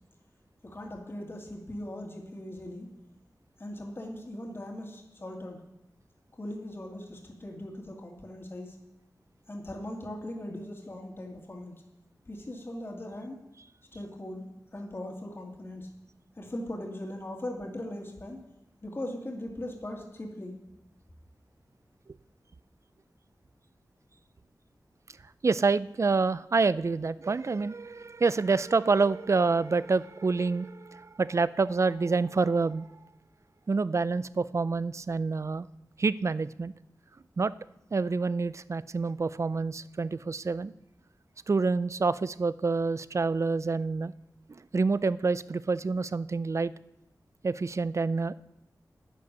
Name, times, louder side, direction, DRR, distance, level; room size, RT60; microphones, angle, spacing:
voice 1, 0.6-2.9 3.6-5.6 6.4-8.8 9.5-11.8 12.3-13.4 13.9-15.9 16.4-18.4 18.8-20.6, left 1 dB, 35° left, 1 dB, 2.1 m, -39 dB
voice 2, 25.4-32.9 33.7-35.7 36.0-36.7 37.4-37.5 37.9-40.7 41.5-44.1 44.5-46.7 47.4-48.3, right 4 dB, 45° right, 17 dB, 0.4 m, -27 dB
10.0 x 9.5 x 6.7 m, 0.87 s
wide cardioid pair, 90°, 7 cm